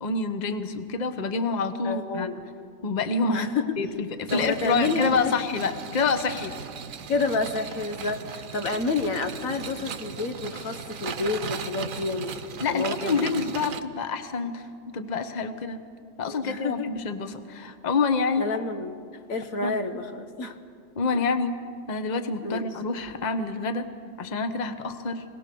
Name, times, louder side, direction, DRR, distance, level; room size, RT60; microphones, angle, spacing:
voice 1, 0.0-2.3 2.8-3.5 3.8-6.5 12.6-14.7 14.9-15.8 16.2-18.4 19.6-19.7 21.0-21.5 21.9-23.9 24.2-25.2, left 4 dB, 35° left, 9 dB, 1.1 m, -27 dB
voice 2, 1.8-2.4 3.3-3.8 4.3-5.3 7.1-12.4 12.7-13.3 16.2-16.9 18.4-19.0 19.3-20.6 21.1-21.2 22.4-22.7, left 3 dB, 85° left, 7 dB, 1.6 m, -29 dB
sound 1, 4.3-13.8, right 6 dB, 80° right, 1.3 m, -37 dB
25.0 x 18.5 x 6.9 m, 2.3 s
omnidirectional pair, 1.4 m